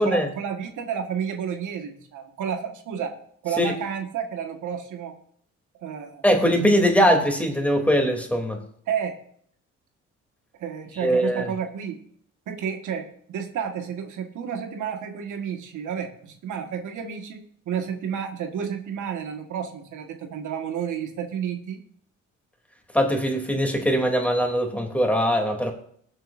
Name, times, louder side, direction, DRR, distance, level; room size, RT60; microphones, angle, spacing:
voice 1, 0.0-3.1 3.4-5.2 5.8-6.2 8.9-9.2 10.6-12.0 12.5-21.8, right 7 dB, 80° right, 5 dB, 1.7 m, -31 dB
voice 2, 6.2-8.6 11.0-11.5 22.9-25.7, equal, 5° left, 2 dB, 3.0 m, -21 dB
22.0 x 7.9 x 2.6 m, 0.63 s
cardioid pair, 90°, 30 cm